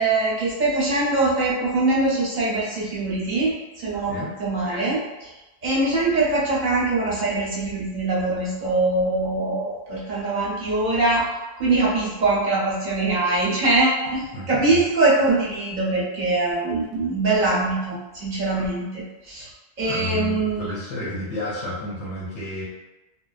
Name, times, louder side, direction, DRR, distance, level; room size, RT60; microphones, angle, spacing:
voice 1, 0.0-4.1 4.4-5.0 5.6-11.3 11.6-19.5 19.8-20.7, right 2 dB, 45° right, -6 dB, 0.7 m, -23 dB
voice 2, 14.3-14.8 18.6-18.7 19.8-22.6, left 1 dB, 85° left, -8 dB, 1.0 m, -31 dB
2.5 x 2.0 x 2.3 m, 1.0 s
omnidirectional pair, 1.2 m